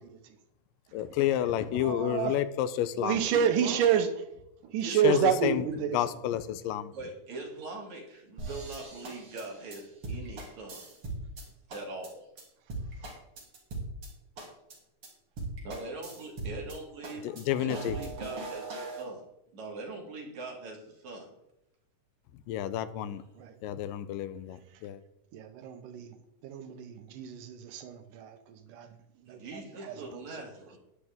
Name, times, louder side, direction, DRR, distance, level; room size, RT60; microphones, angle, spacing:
voice 1, 0.9-3.2 5.0-5.7 5.9-6.9 17.2-18.0 22.5-23.2 23.6-25.0, left 11 dB, 90° left, 13 dB, 2.4 m, -30 dB
voice 2, 1.8-2.3 3.0-4.1 4.7-6.0 23.4-23.5 25.3-26.1 26.4-28.9 29.3-30.2, right 9 dB, 80° right, 8 dB, 2.4 m, -29 dB
voice 3, 3.3-4.0 4.8-5.4 6.9-10.9 11.7-12.3 15.6-17.3 17.6-19.2 19.5-21.3 29.3-30.8, right 3 dB, 60° right, 0 dB, 3.4 m, -42 dB
sound 1, 8.4-11.4 11.7-12.1 12.4-12.5 12.7-14.1 14.4-14.7 15.0-15.1 15.4-16.8 17.0-19.0, right 2 dB, 45° right, 3.5 m, -39 dB
11.5 x 9.9 x 3.7 m, 0.85 s
omnidirectional pair, 3.8 m